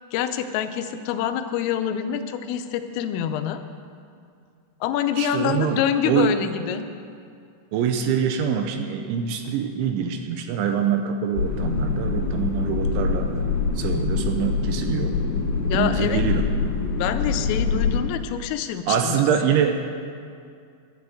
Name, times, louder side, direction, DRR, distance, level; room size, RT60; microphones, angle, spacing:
voice 1, 0.1-3.6 4.8-6.9 15.7-16.2 16.9-19.3, left 9 dB, 85° left, 8 dB, 3.4 m, -26 dB
voice 2, 5.2-6.4 7.7-13.3 13.8-15.1 15.7-16.5 18.9-19.7, right 7 dB, 80° right, 5 dB, 3.0 m, -24 dB
sound 1, 11.3-18.0, left 4 dB, 70° left, 4.7 m, -24 dB
12.0 x 11.0 x 7.8 m, 2.3 s
omnidirectional pair, 5.8 m